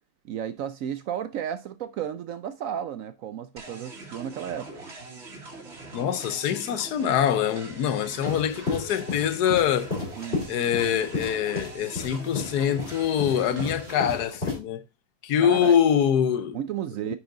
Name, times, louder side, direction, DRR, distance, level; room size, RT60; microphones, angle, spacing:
voice 1, 0.2-4.9 10.2-10.5 15.4-15.8 16.5-17.2, right 9 dB, 70° right, 0.8 m, -33 dB
sound 1, 3.6-14.2, right 2 dB, 40° right, 1.9 m, -43 dB
voice 2, 5.9-10.0 10.5-14.8 15.2-16.6 17.1-17.2, left 9 dB, 75° left, 1.3 m, -24 dB
sound 2, 8.1-14.6, left 3 dB, 35° left, 3.7 m, -32 dB
9.5 x 4.9 x 3.8 m
omnidirectional pair, 1.7 m